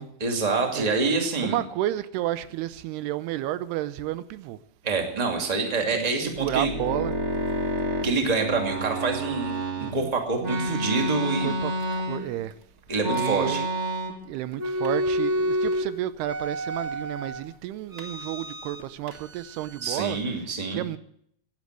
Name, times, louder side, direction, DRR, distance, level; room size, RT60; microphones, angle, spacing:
voice 1, 0.0-1.6 4.8-6.7 8.0-11.6 12.9-13.6 19.8-20.8, right 4 dB, 15° right, 1.7 m, -26 dB
voice 2, 1.4-4.6 5.9-7.1 9.7-10.1 10.5-10.8 11.1-12.5 13.0-13.7 14.3-21.0, right 13 dB, 85° right, 2.8 m, -32 dB
sound 1, 6.4-9.9 10.4-12.5 13.0-14.3 14.5-15.9 16.2-17.4 17.9-18.8 19.1-20.3, right 1 dB, 65° right, 0.7 m, -29 dB
16.5 x 10.5 x 8.0 m
omnidirectional pair, 4.5 m